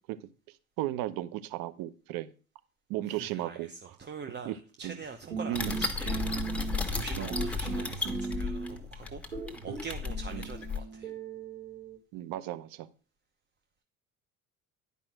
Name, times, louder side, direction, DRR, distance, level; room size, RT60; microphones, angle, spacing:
voice 1, 0.8-2.3 2.9-4.0 4.4-4.6 4.8-5.0 5.5-5.8 7.2-7.3 10.3-10.5 12.1-12.9, right 14 dB, 55° right, 1.0 m, -35 dB
voice 2, 3.1-6.6 6.9-11.1, right 5 dB, 25° right, 1.1 m, -44 dB
sound 1, 5.3-7.0 7.3-8.9 9.3-12.0, right 4 dB, 85° right, 3.9 m, -37 dB
sound 2, 5.5-10.8, left 4 dB, 5° left, 1.6 m, -34 dB
10.5 x 5.4 x 6.3 m
figure-of-eight pair, 60°, 43 cm